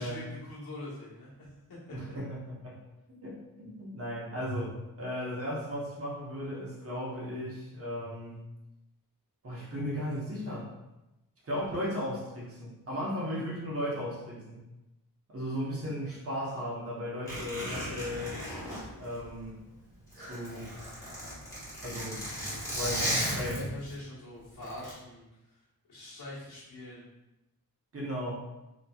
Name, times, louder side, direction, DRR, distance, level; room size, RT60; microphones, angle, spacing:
voice 1, 0.0-2.0 23.4-25.6 25.9-27.0, left 1 dB, 85° left, -8 dB, 1.3 m, -44 dB
voice 2, 1.9-2.8 3.2-8.4 9.4-10.7 11.4-14.6 15.3-18.4 19.0-19.6 20.1-20.8 21.8-22.3 22.7-23.7 27.9-28.3, equal, 40° right, -5 dB, 0.8 m, -36 dB
Zipper (clothing), 17.3-19.7 20.0-23.9 24.6-24.9, equal, 10° left, 1.3 m, -35 dB
2.9 x 2.8 x 2.2 m, 0.97 s
wide cardioid pair, 140°, 37 cm